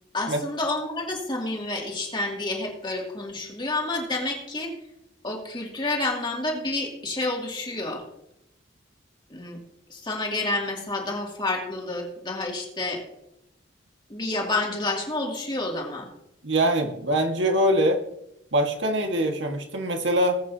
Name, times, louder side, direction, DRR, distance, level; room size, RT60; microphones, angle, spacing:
voice 1, 0.1-4.7 5.2-8.0 9.3-9.6 9.9-13.0 14.1-16.1, left 2 dB, 25° left, -1 dB, 2.4 m, -29 dB
voice 2, 16.4-18.0 18.5-20.4, right 1 dB, 75° right, 3 dB, 1.7 m, -23 dB
20.0 x 8.3 x 2.8 m, 0.83 s
head